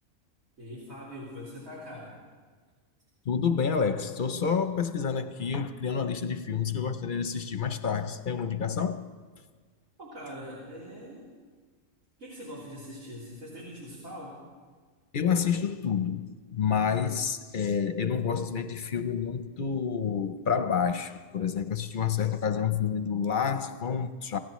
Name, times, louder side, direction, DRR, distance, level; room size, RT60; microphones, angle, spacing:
voice 1, 0.6-2.2 10.0-11.3 12.2-14.4, equal, 85° right, 3.7 m, -42 dB
voice 2, 3.3-9.1 15.1-24.4, left 7 dB, 50° left, 0.7 m, -29 dB
26.5 x 16.0 x 3.1 m
omnidirectional pair, 1.4 m